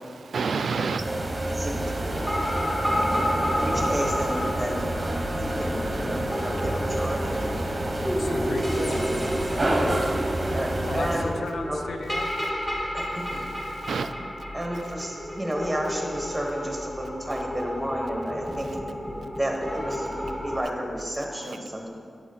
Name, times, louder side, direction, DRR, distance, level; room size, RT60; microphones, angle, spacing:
voice 1, 0.0-1.1 2.9-3.1 7.3-7.4 13.2-14.1 21.5-21.6, right 5 dB, 80° right, 9 dB, 0.3 m, -30 dB
sound 1, 1.0-11.2, right 1 dB, 25° right, 0.8 m, -28 dB
voice 2, 1.5-2.1 2.8-3.1 3.5-4.9 5.4-7.4 10.5-11.8 12.9-13.5 14.5-18.7 19.4-21.9, equal, ahead, 0 dB, 1.2 m, -31 dB
sound 2, 2.1-20.6, equal, 20° left, 1.6 m, -31 dB
Bowed string instrument, 3.3-7.8, right 1 dB, 45° left, 1.6 m, -43 dB
voice 3, 8.2-9.1 10.9-12.3 19.6-20.1, left 4 dB, 75° left, 8 dB, 0.4 m, -36 dB
9.2 x 6.1 x 3.9 m, 2.2 s
wide cardioid pair, 150°, 0 cm